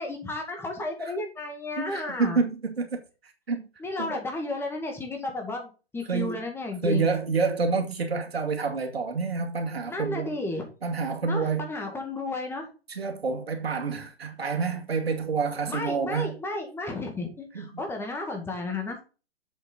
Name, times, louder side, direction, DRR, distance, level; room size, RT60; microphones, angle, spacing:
voice 1, 0.0-2.4 3.8-7.1 9.9-10.7 11.2-12.7 15.7-19.0, left 2 dB, 5° left, 2.0 m, -33 dB
voice 2, 1.8-3.0 3.5-3.6 4.0-4.2 6.1-6.4 6.8-10.3 10.8-11.7 12.9-16.3 17.5-17.6, right 4 dB, 70° right, 2.4 m, -28 dB
7.7 x 6.7 x 3.9 m
figure-of-eight pair, 120°, 32 cm